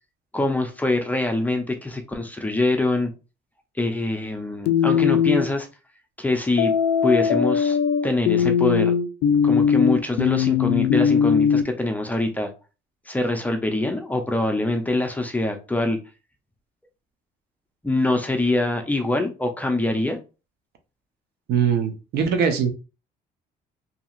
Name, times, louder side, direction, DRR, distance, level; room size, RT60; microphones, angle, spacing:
voice 1, 0.3-3.1 3.8-5.7 6.2-6.7 7.0-7.8 8.0-8.9 9.4-12.5 13.1-16.0 17.8-20.2, left 2 dB, 10° left, 0.6 m, -24 dB
sound 1, 4.7-5.5 6.6-11.6, left 7 dB, 80° left, 0.4 m, -20 dB
voice 2, 21.5-22.7, right 7 dB, 70° right, 0.7 m, -21 dB
2.8 x 2.8 x 2.4 m
cardioid pair, 110°, 17 cm